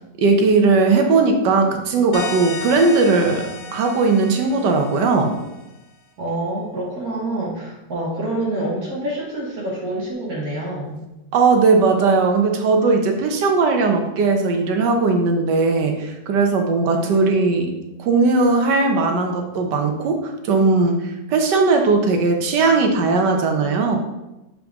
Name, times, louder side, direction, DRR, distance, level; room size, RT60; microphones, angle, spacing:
voice 1, 0.2-3.5 3.7-5.3 11.3-17.7 18.0-24.0, right 3 dB, 80° right, 4 dB, 1.5 m, -18 dB
sound 1, 2.1-5.5, left 4 dB, 65° left, 1.0 m, -33 dB
voice 2, 6.2-11.1 16.9-17.2, right 1 dB, 60° right, -5 dB, 1.8 m, -27 dB
7.4 x 3.8 x 3.5 m, 0.97 s
omnidirectional pair, 1.8 m